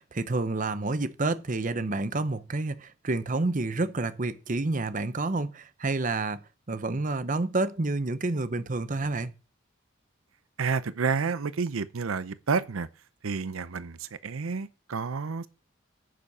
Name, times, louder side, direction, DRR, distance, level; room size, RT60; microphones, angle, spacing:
voice 1, 0.0-9.3, right 2 dB, 40° right, 0.8 m, -29 dB
voice 2, 10.6-12.9 13.2-15.5, right 5 dB, 85° right, 0.6 m, -30 dB
10.0 x 6.8 x 7.3 m
head